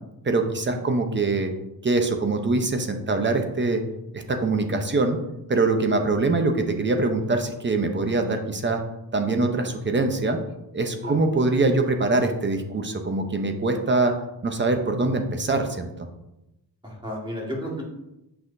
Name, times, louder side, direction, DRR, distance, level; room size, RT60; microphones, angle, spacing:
voice 1, 0.2-1.5 1.8-3.8 4.1-5.2 5.5-8.8 9.1-10.4 10.7-14.1 14.4-15.9, right 3 dB, 30° right, 5 dB, 0.7 m, -23 dB
voice 2, 16.8-17.8, equal, 10° right, -3 dB, 1.7 m, -32 dB
8.5 x 5.7 x 2.6 m, 0.89 s
wide cardioid pair, 145°, 41 cm